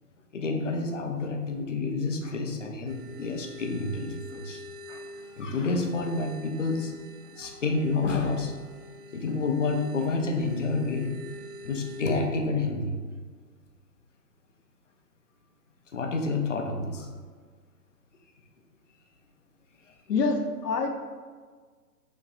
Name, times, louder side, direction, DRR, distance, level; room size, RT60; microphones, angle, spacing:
voice 1, 0.3-4.6 4.9-5.0 5.4-7.0 7.2-8.5 9.1-11.1 11.6-13.0 15.9-17.1, left 3 dB, 50° left, 3 dB, 0.5 m, -29 dB
sound 1, 2.9-12.2, left 1 dB, 60° right, 1.1 m, -46 dB
voice 2, 20.1-20.9, left 4 dB, 75° left, 4 dB, 0.8 m, -26 dB
5.9 x 3.1 x 2.5 m, 1.5 s
hypercardioid pair, 170°, 48 cm